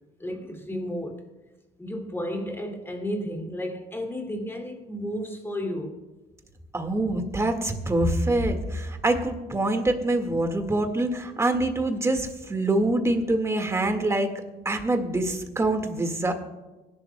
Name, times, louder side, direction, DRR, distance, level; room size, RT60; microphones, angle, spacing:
voice 1, 0.2-1.3 1.8-6.0, equal, 15° left, 2.5 m, -32 dB
voice 2, 6.7-14.3 14.6-16.3, right 2 dB, 15° right, 1.8 m, -25 dB
24.5 x 11.5 x 2.3 m
cardioid pair, 110°, 17 cm